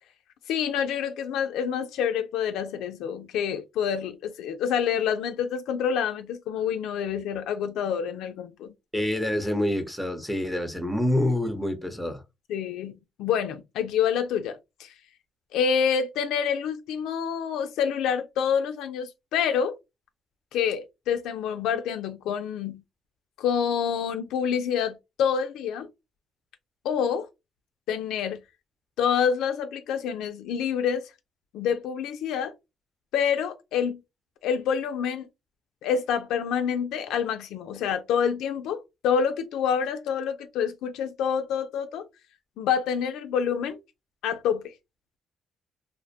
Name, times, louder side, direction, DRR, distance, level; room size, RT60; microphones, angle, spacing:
voice 1, 0.5-8.7 12.5-14.9 15.5-19.8 20.5-22.8 23.4-25.9 26.8-27.3 27.9-28.4 29.0-31.1 31.5-32.5 33.1-34.0 34.4-35.3 35.8-42.1 42.6-43.8 44.2-44.7, left 7 dB, 90° left, 0.3 m, -27 dB
voice 2, 8.9-12.2, left 1 dB, ahead, 0.7 m, -27 dB
2.4 x 2.1 x 2.6 m
cardioid pair, 90°, 0 cm